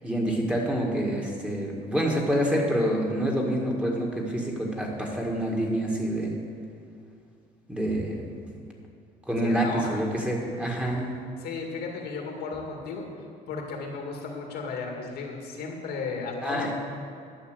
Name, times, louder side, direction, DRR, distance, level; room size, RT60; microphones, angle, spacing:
voice 1, 0.0-6.4 7.7-8.2 9.3-11.1 16.4-16.7, right 1 dB, 5° right, -2 dB, 1.9 m, -27 dB
voice 2, 9.4-10.1 11.4-13.1 13.5-16.7, left 4 dB, 75° left, 1 dB, 2.1 m, -34 dB
11.5 x 5.7 x 7.9 m, 2.5 s
cardioid pair, 110°, 17 cm